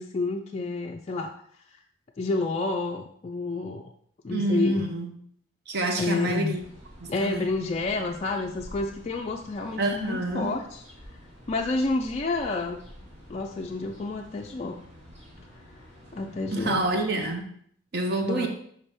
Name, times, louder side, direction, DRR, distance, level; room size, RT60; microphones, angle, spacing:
voice 1, 0.0-1.3 2.2-3.9 4.2-4.9 6.0-6.6 7.1-10.8 11.5-12.8 13.3-14.8 16.1-16.8 18.2-18.5, left 3 dB, 30° left, 1 dB, 0.3 m, -29 dB
voice 2, 4.3-5.1 5.7-6.7 7.0-7.5 9.8-10.5 16.5-17.5 17.9-18.5, right 2 dB, 55° right, 4 dB, 0.7 m, -27 dB
sound 1, 6.5-17.4, equal, 35° right, 2.4 m, -49 dB
5.7 x 5.1 x 3.4 m, 0.64 s
head